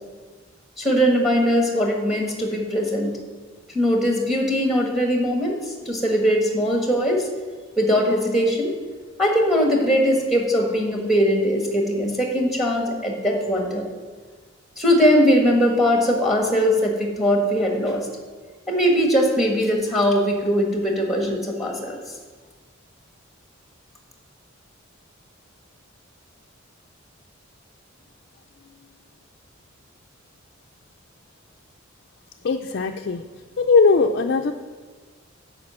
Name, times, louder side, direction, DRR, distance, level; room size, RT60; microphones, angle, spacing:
voice 1, 0.8-3.2 3.7-5.6 5.8-7.3 7.8-8.7 9.2-13.8 14.8-18.1 18.7-22.0, equal, ahead, 1 dB, 1.3 m, -20 dB
voice 2, 32.4-33.2 33.6-34.5, left 4 dB, 55° left, 4 dB, 0.4 m, -19 dB
10.5 x 5.0 x 7.5 m, 1.5 s
head